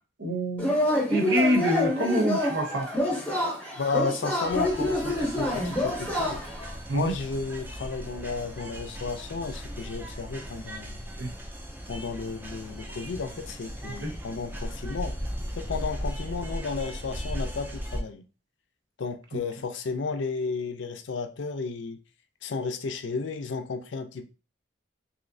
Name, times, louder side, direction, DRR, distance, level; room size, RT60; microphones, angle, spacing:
voice 1, 0.2-0.7 1.0-2.9 6.9-7.1 11.2-11.3 14.0-14.1, equal, 70° right, 0.8 m, -26 dB
Yell / Cheering, 0.6-6.7, left 1 dB, 5° left, 0.7 m, -27 dB
voice 2, 3.8-6.4 6.9-11.0 11.9-15.2 15.5-18.2 19.0-22.0 22.4-24.2, left 4 dB, 70° left, 0.4 m, -33 dB
sound 1, 4.4-18.0, equal, 10° right, 0.3 m, -37 dB
3.1 x 2.7 x 2.6 m
head